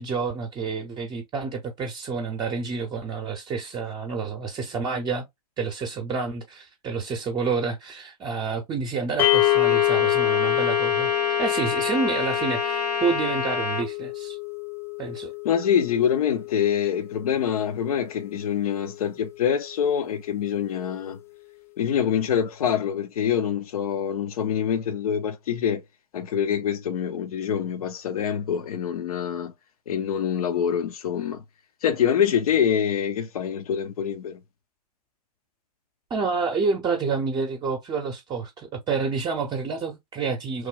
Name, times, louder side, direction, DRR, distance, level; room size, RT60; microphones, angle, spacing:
voice 1, 0.0-5.2 5.6-11.1 11.4-14.4 15.0-15.3 36.1-40.7, right 4 dB, 20° right, 0.7 m, -29 dB
Trumpet, 9.2-13.9, left 3 dB, 85° left, 1.6 m, -28 dB
sound 1, 9.2-19.5, left 21 dB, 10° left, 0.4 m, -27 dB
voice 2, 15.4-21.2 21.8-25.8 26.1-29.5 29.9-31.4 31.8-34.4, left 8 dB, 65° left, 0.7 m, -25 dB
3.1 x 2.2 x 3.7 m
figure-of-eight pair, 100°, 20 cm